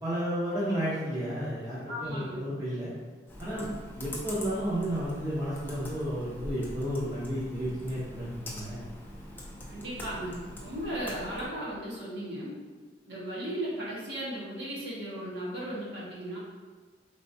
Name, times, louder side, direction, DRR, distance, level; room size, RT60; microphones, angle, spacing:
voice 1, 0.0-2.9 3.4-3.7 4.0-8.8, equal, 20° right, -9 dB, 0.7 m, -32 dB
voice 2, 1.9-2.4 9.7-12.5 13.1-16.4, right 1 dB, 65° right, -7 dB, 1.3 m, -36 dB
Computer keyboard, 3.3-11.5, left 1 dB, 10° left, 0.5 m, -43 dB
4.3 x 3.3 x 2.6 m, 1.4 s
head